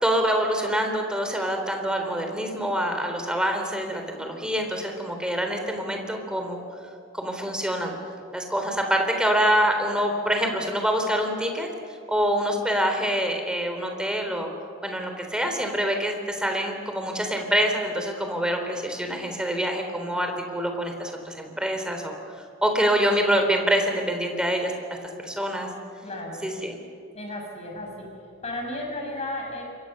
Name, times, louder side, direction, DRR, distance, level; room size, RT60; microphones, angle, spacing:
voice 1, 0.0-6.6 7.1-7.9 8.3-11.7 12.1-14.5 14.8-22.2 22.6-24.7 25.2-25.7 26.4-26.7, equal, 5° right, 4 dB, 3.7 m, -25 dB
voice 2, 26.0-26.5 27.1-28.1 28.4-29.6, left 1 dB, 35° left, 2 dB, 6.2 m, -33 dB
27.0 x 23.5 x 6.8 m, 2.4 s
head